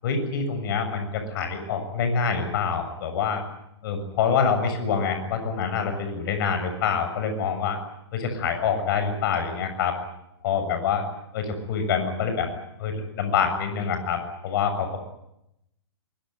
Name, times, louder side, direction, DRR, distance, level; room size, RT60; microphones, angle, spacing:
voice 1, 0.0-3.4 3.8-7.8 8.1-10.0 10.4-11.1 11.3-12.5 12.8-15.0, left 6 dB, 55° left, 7 dB, 7.3 m, -26 dB
23.5 x 22.0 x 9.5 m, 0.83 s
hypercardioid pair, 130°, 14 cm